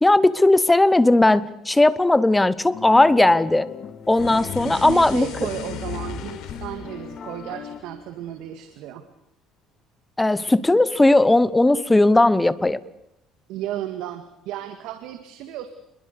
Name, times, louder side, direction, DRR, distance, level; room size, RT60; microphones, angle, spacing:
voice 1, 0.0-3.7 4.1-5.3 10.2-12.8, left 2 dB, 10° left, 16 dB, 1.0 m, -17 dB
sound 1, 2.7-7.8, left 7 dB, 35° left, 2.3 m, -39 dB
sound 2, 4.0-8.5, left 8 dB, 65° left, 4.0 m, -37 dB
voice 2, 4.6-9.1 13.5-15.7, right 12 dB, 75° right, 8 dB, 2.0 m, -34 dB
28.0 x 22.0 x 6.9 m, 0.85 s
cardioid pair, 140°, 0 cm